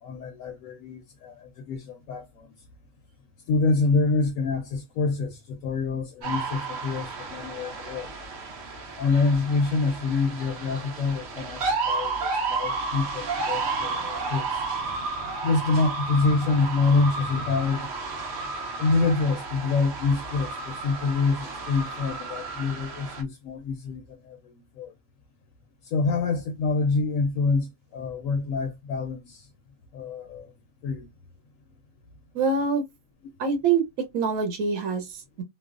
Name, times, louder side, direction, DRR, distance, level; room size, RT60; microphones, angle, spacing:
voice 1, 0.0-2.5 3.5-8.1 9.0-14.6 15.4-18.0 18.8-24.9 25.8-29.5 29.9-30.5 30.8-31.1, left 4 dB, 75° left, 0.9 m, -26 dB
sound 1, 6.2-23.2, right 4 dB, 55° right, 0.9 m, -32 dB
voice 2, 32.3-32.8 33.4-35.4, right 5 dB, 80° right, 1.2 m, -25 dB
3.1 x 2.0 x 2.4 m
omnidirectional pair, 1.5 m